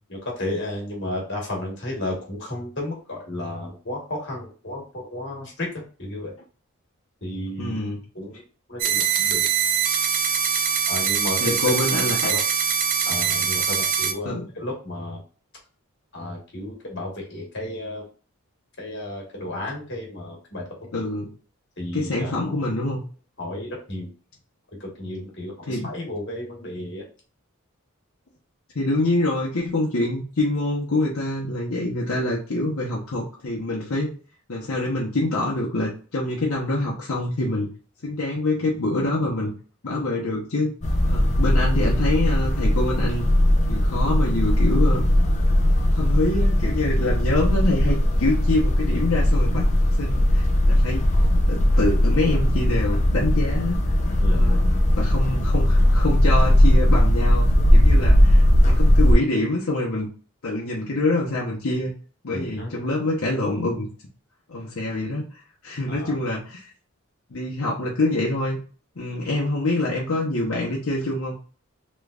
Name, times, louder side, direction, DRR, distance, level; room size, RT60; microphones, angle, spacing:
voice 1, 0.1-6.3 7.2-7.8 8.1-8.4 8.7-9.5 10.9-11.8 12.2-12.4 13.0-15.2 16.1-18.1 18.8-21.1 21.8-22.6 23.4-24.1 24.8-27.0 39.9-40.0 54.2-54.6 62.3-62.7 65.9-66.1 69.3-69.4, left 1 dB, 55° left, -1 dB, 1.5 m, -33 dB
voice 2, 7.6-8.0 11.4-12.3 14.2-14.5 20.9-21.3 21.9-23.0 25.7-25.9 28.7-34.1 34.5-37.7 38.0-39.5 39.8-40.7 41.0-43.2 43.7-45.0 45.9-53.8 54.3-54.6 54.9-60.1 60.4-61.9 62.2-63.9 64.5-65.3 65.6-66.6 67.3-68.6 69.0-71.3, left 2 dB, 75° left, -4 dB, 0.9 m, -25 dB
sound 1, 8.8-14.1, right 7 dB, 35° right, 0.4 m, -23 dB
sound 2, 40.8-59.2, left 1 dB, 30° left, 0.5 m, -18 dB
3.4 x 3.1 x 2.4 m, 0.38 s
head